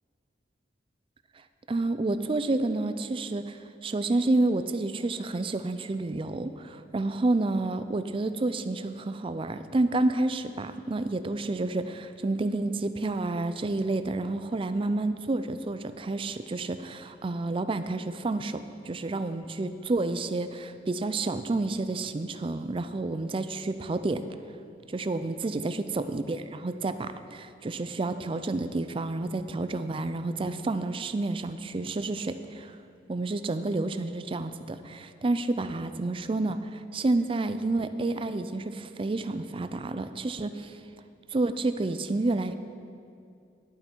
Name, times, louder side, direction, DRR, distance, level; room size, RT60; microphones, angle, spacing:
voice 1, 1.7-24.2 24.9-32.8 33.1-40.8 41.3-42.6, right 2 dB, 30° right, 11 dB, 0.4 m, -29 dB
11.0 x 8.9 x 4.5 m, 2.5 s
head